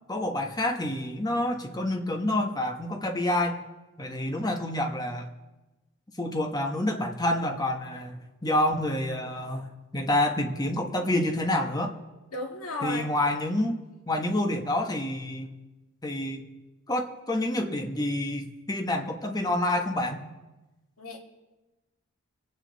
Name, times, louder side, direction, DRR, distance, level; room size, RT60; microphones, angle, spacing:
voice 1, 0.1-3.6 4.0-5.3 6.2-12.0 12.8-13.8 14.1-15.5 16.0-16.5 16.9-20.3, left 1 dB, 15° left, 3 dB, 1.1 m, -28 dB
voice 2, 12.3-13.0 21.0-21.2, left 2 dB, 75° left, 1 dB, 2.2 m, -33 dB
25.0 x 9.3 x 4.0 m, 1.1 s
head